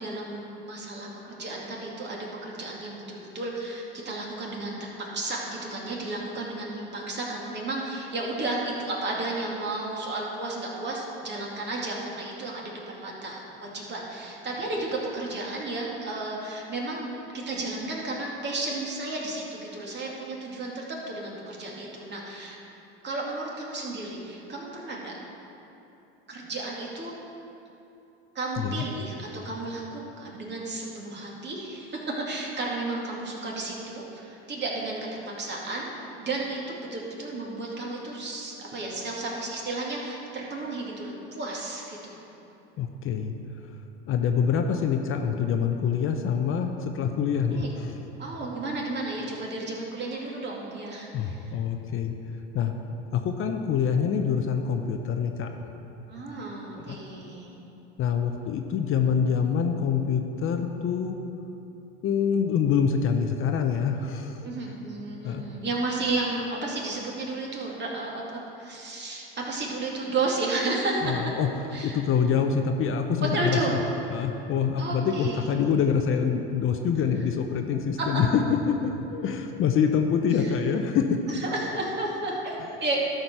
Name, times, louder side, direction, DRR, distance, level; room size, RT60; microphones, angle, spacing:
voice 1, 0.0-4.9 5.1-22.6 23.0-25.1 26.3-27.1 28.3-42.2 47.5-47.7 48.2-51.4 56.1-57.6 64.4-71.0 71.7-72.0 73.2-73.8 74.8-75.5 78.0-78.1 80.3-80.5 81.3-83.0, right 2 dB, 35° right, -3 dB, 2.3 m, -33 dB
voice 2, 42.8-43.3 44.1-47.9 51.1-52.1 52.5-52.7 53.1-55.5 56.9-57.0 58.0-61.2 62.0-64.4 65.2-65.4 71.0-71.5 71.8-73.8 74.1-81.2, left 7 dB, 45° left, 5 dB, 0.8 m, -25 dB
12.5 x 5.2 x 6.1 m, 2.9 s
hypercardioid pair, 90°, 30 cm